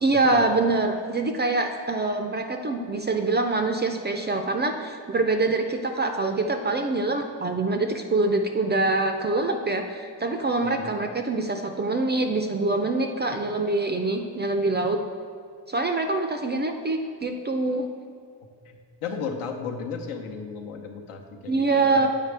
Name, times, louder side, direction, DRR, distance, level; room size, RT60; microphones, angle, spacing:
voice 1, 0.0-15.0 15.7-17.9 21.5-22.1, right 3 dB, 25° right, 5 dB, 0.3 m, -25 dB
voice 2, 18.7-22.1, left 5 dB, 80° left, 3 dB, 0.9 m, -34 dB
7.4 x 5.0 x 3.3 m, 2.3 s
cardioid pair, 85°, 49 cm